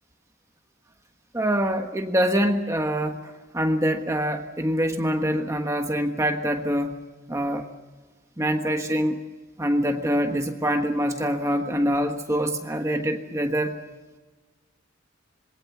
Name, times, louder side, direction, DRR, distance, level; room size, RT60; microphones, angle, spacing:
voice 1, 1.3-7.0 7.3-7.7 8.4-9.2 9.6-13.7, equal, 15° right, 4 dB, 1.3 m, -25 dB
27.0 x 21.5 x 7.2 m, 1.3 s
head